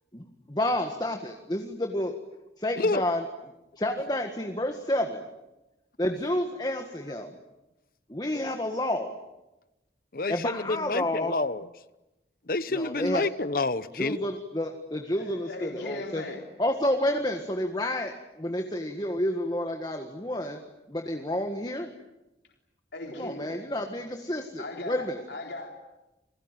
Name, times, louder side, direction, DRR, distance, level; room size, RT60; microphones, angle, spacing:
voice 1, 0.1-2.1 2.6-3.2 3.8-5.2 6.0-7.4 8.1-9.1 10.3-11.4 12.7-13.2 13.9-16.2 16.6-20.6 20.9-21.9 23.2-25.2, left 1 dB, 20° left, 5 dB, 1.7 m, -30 dB
voice 2, 10.1-11.7 12.5-14.2, left 3 dB, 55° left, 15 dB, 0.9 m, -28 dB
voice 3, 15.2-16.5 22.9-23.7 24.6-25.8, left 2 dB, 85° left, 1 dB, 3.8 m, -38 dB
29.5 x 22.0 x 9.1 m, 0.99 s
head